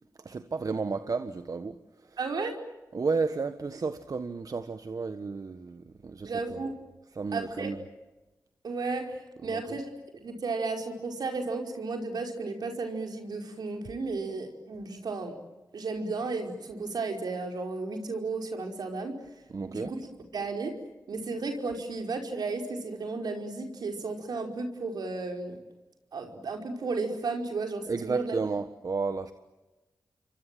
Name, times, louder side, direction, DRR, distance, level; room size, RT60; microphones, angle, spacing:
voice 1, 0.2-2.2 2.9-6.6 7.1-7.8 9.4-9.8 19.5-19.9 27.9-29.3, right 4 dB, 60° right, 1.4 m, -32 dB
voice 2, 2.2-2.6 6.2-6.7 7.3-7.7 8.6-9.9 10.2-15.3 15.7-19.2 19.7-20.0 20.3-20.7 21.1-25.6 26.1-28.3, right 3 dB, 80° right, 4.9 m, -33 dB
29.0 x 24.0 x 7.7 m
cardioid pair, 45°, 7 cm